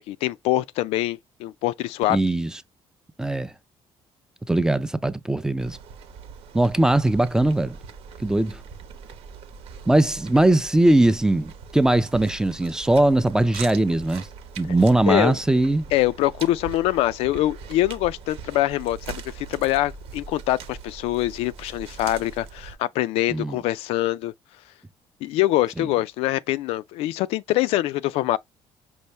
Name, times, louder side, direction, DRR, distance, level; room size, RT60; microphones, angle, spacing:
voice 1, 0.0-2.2 15.1-15.3 15.9-24.3 25.2-28.4, left 15 dB, 85° left, 0.4 m, -24 dB
voice 2, 2.1-2.5 3.2-3.5 4.5-5.8 6.5-7.8 8.2-8.6 9.9-14.3 14.6-15.9 23.3-23.6 25.8-25.9, right 1 dB, 5° right, 0.4 m, -20 dB
sound 1, 5.6-22.8, right 6 dB, 75° right, 0.9 m, -41 dB
5.5 x 2.7 x 3.2 m
cardioid pair, 130°, 10 cm